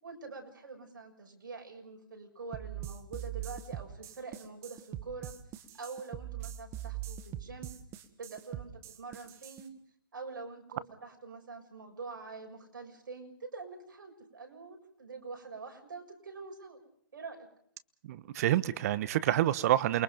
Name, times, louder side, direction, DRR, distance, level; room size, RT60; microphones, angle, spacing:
voice 1, 0.0-7.7 8.2-9.8 10.1-16.8 17.1-17.5, right 4 dB, 80° right, 6.8 m, -45 dB
sound 1, 2.5-9.6, right 12 dB, 25° right, 1.6 m, -42 dB
voice 2, 18.0-20.0, right 13 dB, 50° right, 1.2 m, -28 dB
28.5 x 22.5 x 5.3 m
hypercardioid pair, 145°, 11 cm